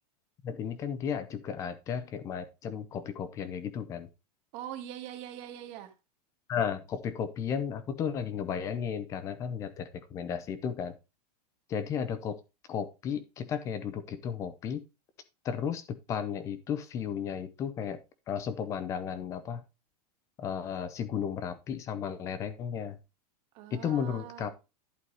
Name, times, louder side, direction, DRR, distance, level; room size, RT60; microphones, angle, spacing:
voice 1, 0.4-4.1 6.5-10.9 11.7-12.4 12.7-14.8 15.4-18.0 18.3-19.6 20.4-23.0 23.7-24.5, left 7 dB, 15° left, 14 dB, 0.7 m, -34 dB
voice 2, 4.5-5.9 23.5-24.5, right 11 dB, 30° right, 6 dB, 1.7 m, -42 dB
11.5 x 4.6 x 4.7 m, 0.27 s
supercardioid pair, 180°, 21 cm